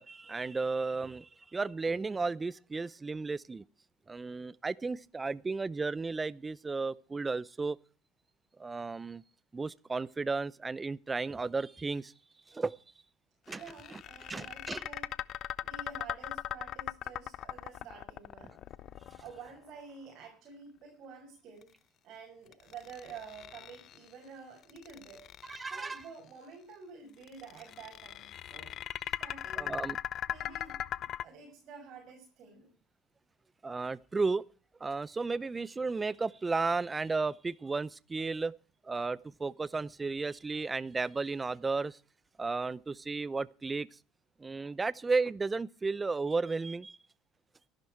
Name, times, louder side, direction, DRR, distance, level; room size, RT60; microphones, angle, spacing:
voice 1, 0.0-3.6 4.1-7.8 8.6-9.2 9.5-12.1 12.5-12.7 13.5-13.6 14.3-14.8 25.5-26.0 29.6-30.0 33.6-34.4 34.8-38.5 38.8-42.0 42.4-43.9 44.4-47.0, right 4 dB, 20° right, 0.6 m, -34 dB
sound 1, 13.5-19.7 22.5-24.1 24.6-26.0 27.2-31.2, left 11 dB, 55° left, 0.6 m, -39 dB
voice 2, 13.5-15.1 15.6-18.6 19.2-21.7 22.0-25.3 25.6-28.8 29.2-29.9 30.3-32.7, right 5 dB, 55° right, 6.5 m, -49 dB
14.5 x 12.0 x 4.6 m
supercardioid pair, 90°, 0 cm